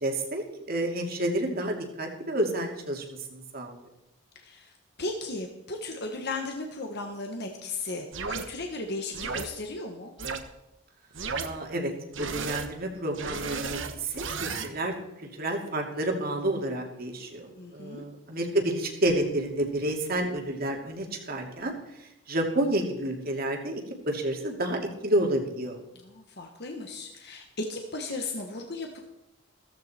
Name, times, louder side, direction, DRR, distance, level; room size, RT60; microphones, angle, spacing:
voice 1, 0.0-3.7 11.4-25.8, right 1 dB, 45° right, 2 dB, 2.6 m, -30 dB
voice 2, 4.3-4.7 5.0-10.1 17.6-18.0 26.0-29.0, left 2 dB, 50° left, 3 dB, 1.5 m, -36 dB
sound 1, 8.1-8.4 9.1-9.4 10.2-10.4 11.1-11.5 12.1-12.7 13.1-14.7, right 5 dB, 60° right, 1.3 m, -33 dB
16.0 x 14.5 x 4.5 m, 0.89 s
head